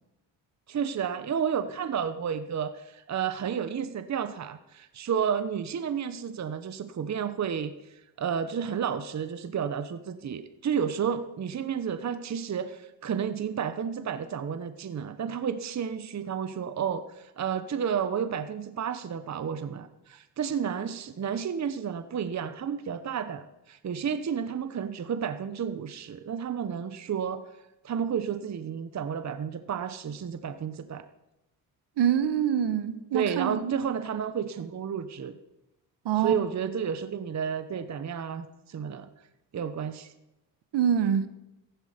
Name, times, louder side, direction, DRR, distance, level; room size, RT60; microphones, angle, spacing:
voice 1, 0.7-27.4 27.8-31.0 33.1-35.4 36.2-39.1 39.5-40.1, right 7 dB, 35° right, 1.0 m, -31 dB
voice 2, 32.0-33.7 36.0-36.4 40.7-41.3, right 9 dB, 60° right, 1.2 m, -25 dB
15.0 x 11.0 x 5.2 m
cardioid pair, 85°, 46 cm